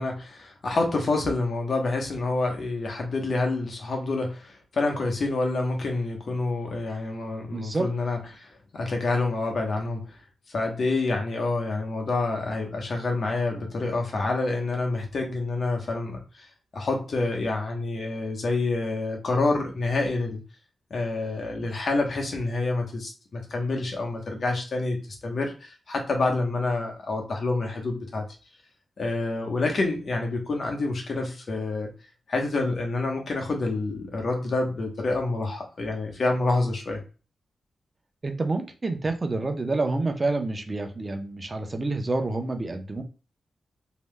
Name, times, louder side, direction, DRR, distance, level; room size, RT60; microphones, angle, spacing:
voice 1, 0.0-10.2 10.5-16.5 16.7-20.4 20.9-28.2 29.0-31.9 32.3-37.0, left 2 dB, 65° left, 0.9 m, -27 dB
voice 2, 7.5-7.9 38.2-43.0, right 2 dB, 40° right, 0.7 m, -28 dB
3.2 x 2.8 x 2.2 m
supercardioid pair, 40°, 0 cm